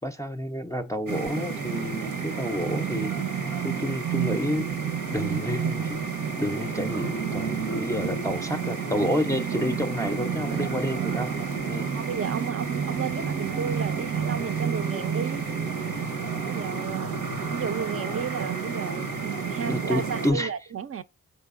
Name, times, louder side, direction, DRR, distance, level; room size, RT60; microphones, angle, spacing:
voice 1, 0.0-3.1 3.6-6.0 6.4-11.3 11.7-11.9 19.6-20.5, left 1 dB, 10° left, 0.5 m, -29 dB
sound 1, 1.1-20.3, right 6 dB, 80° right, 1.0 m, -30 dB
voice 2, 11.9-15.4 16.5-17.2 17.5-21.0, right 7 dB, 45° right, 0.5 m, -33 dB
4.6 x 3.3 x 2.4 m
cardioid pair, 45°, 33 cm